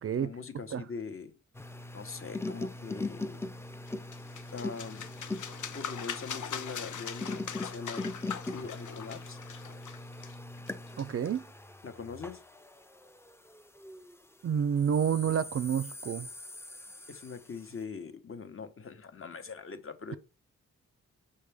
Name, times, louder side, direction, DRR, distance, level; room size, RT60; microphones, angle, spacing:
voice 1, 0.1-1.3 1.9-3.4 4.5-5.2 5.7-8.0 8.5-9.4 11.8-12.4 17.1-20.2, left 5 dB, 45° left, 1.0 m, -42 dB
sound 1, 1.5-14.2 14.8-17.6, left 2 dB, 10° left, 0.5 m, -41 dB
sound 2, 3.9-11.4, left 8 dB, 70° left, 0.8 m, -42 dB
voice 2, 11.0-11.4 14.4-16.3, right 8 dB, 45° right, 0.4 m, -29 dB
6.4 x 5.6 x 3.4 m
wide cardioid pair, 95°, 31 cm